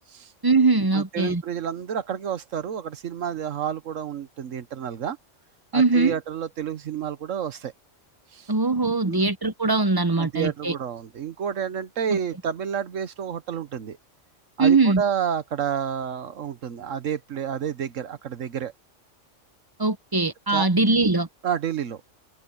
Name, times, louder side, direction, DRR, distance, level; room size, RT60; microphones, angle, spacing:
voice 1, 0.4-1.4 5.7-6.1 8.5-10.7 12.1-12.2 14.6-15.0 19.8-21.3, right 3 dB, 25° right, 0.6 m, -21 dB
voice 2, 0.9-5.2 5.7-7.7 8.3-8.5 9.1-9.3 10.1-14.0 14.6-18.7 20.5-20.7 21.4-22.0, right 8 dB, 85° right, 1.4 m, -30 dB
omnidirectional pair, 1.3 m